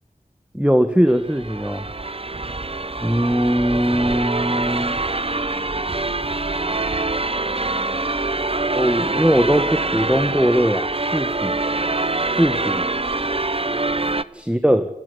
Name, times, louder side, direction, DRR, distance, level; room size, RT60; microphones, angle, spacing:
voice 1, 0.5-1.8 3.0-5.0 8.7-11.6 12.4-12.9 14.3-14.9, equal, 10° right, 9 dB, 1.6 m, -20 dB
sound 1, 1.1-14.2, right 2 dB, 40° right, 0.8 m, -24 dB
22.5 x 17.0 x 9.8 m, 0.82 s
wide cardioid pair, 45°, 15 cm